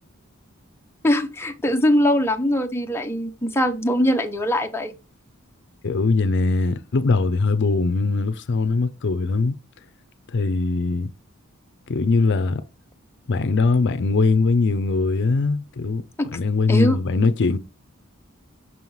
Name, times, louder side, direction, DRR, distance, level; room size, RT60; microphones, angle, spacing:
voice 1, 1.0-4.9 16.2-16.3 16.7-17.0, equal, 10° left, 0.6 m, -21 dB
voice 2, 5.8-9.6 10.3-11.1 11.9-12.6 13.3-16.0 16.3-17.6, left 3 dB, 60° left, 0.5 m, -21 dB
6.2 x 5.4 x 3.1 m
head